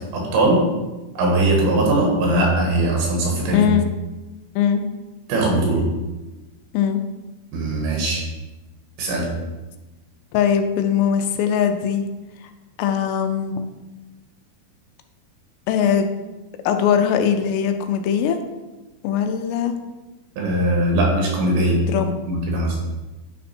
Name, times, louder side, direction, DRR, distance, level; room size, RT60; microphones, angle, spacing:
voice 1, 0.1-0.6 1.2-3.7 5.3-5.8 7.5-8.2 9.0-9.3 20.4-21.7 22.3-22.8, right 1 dB, 90° right, -1 dB, 3.9 m, -20 dB
voice 2, 3.5-3.9 4.6-4.8 6.7-7.0 10.3-12.0 12.8-13.5 15.7-16.1 16.7-18.4 19.0-19.8 21.9-22.1, left 8 dB, 85° left, 7 dB, 2.7 m, -20 dB
9.9 x 3.4 x 4.3 m, 1.1 s
omnidirectional pair, 5.0 m